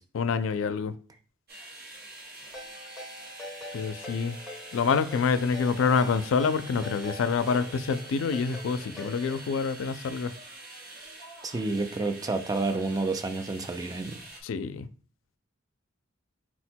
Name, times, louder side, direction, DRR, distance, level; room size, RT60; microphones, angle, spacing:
voice 1, 0.1-0.9 3.7-4.4 4.7-10.3 14.4-14.9, left 5 dB, 75° left, 0.4 m, -27 dB
sound 1, 1.5-14.4, right 2 dB, 50° right, 1.0 m, -46 dB
Ringtone, 2.5-9.4, left 1 dB, 5° right, 1.1 m, -43 dB
voice 2, 11.4-14.2, right 3 dB, 20° right, 0.4 m, -29 dB
4.4 x 2.2 x 4.3 m
head